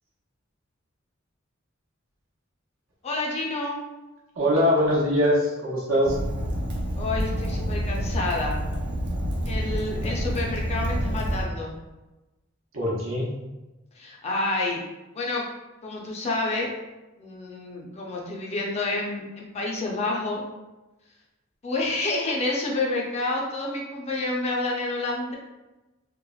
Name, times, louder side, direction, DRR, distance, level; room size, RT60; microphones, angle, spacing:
voice 1, 3.0-3.8 6.9-8.6 9.4-11.7 13.9-14.8 15.1-15.4 15.8-16.7 17.2-20.4 21.6-25.3, left 2 dB, 30° left, -2 dB, 0.5 m, -29 dB
voice 2, 4.4-6.2 12.7-13.3, equal, 80° right, -4 dB, 0.8 m, -22 dB
Fire, 6.0-11.5, equal, 55° right, 0.4 m, -28 dB
3.0 x 2.0 x 2.3 m, 1.1 s
head